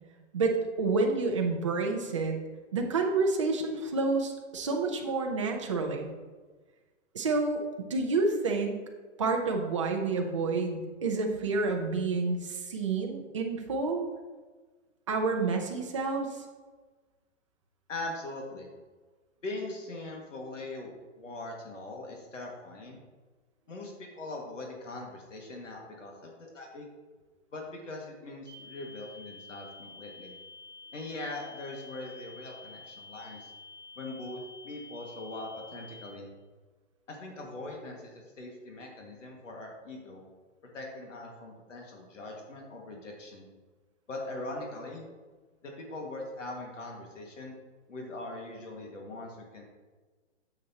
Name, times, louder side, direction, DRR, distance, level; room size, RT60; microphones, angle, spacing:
voice 1, 0.3-2.4 2.7-6.1 7.1-8.7 9.2-14.0 15.1-16.3, right 3 dB, 25° right, 2 dB, 0.7 m, -29 dB
voice 2, 17.9-18.7 19.4-23.0 23.7-26.9 27.5-30.4 30.9-33.5 34.0-36.3 37.1-40.2 40.7-43.5 44.1-45.1 45.6-47.6 47.9-49.6, left 2 dB, 85° left, 0 dB, 2.0 m, -41 dB
sound 1, 28.5-36.1, left 3 dB, 20° left, 2.7 m, -49 dB
9.2 x 7.2 x 2.9 m, 1.3 s
hypercardioid pair, 175°, 36 cm